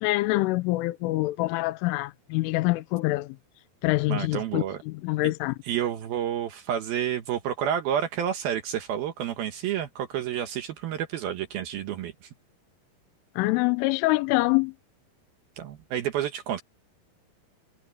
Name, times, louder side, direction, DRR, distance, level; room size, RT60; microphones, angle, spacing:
voice 1, 0.0-3.4 3.8-5.5 13.4-14.7, left 20 dB, 85° left, 3.2 m, -25 dB
voice 2, 4.1-4.8 5.6-12.3 15.6-16.6, right 10 dB, 75° right, 2.3 m, -30 dB
omnidirectional pair, 5.7 m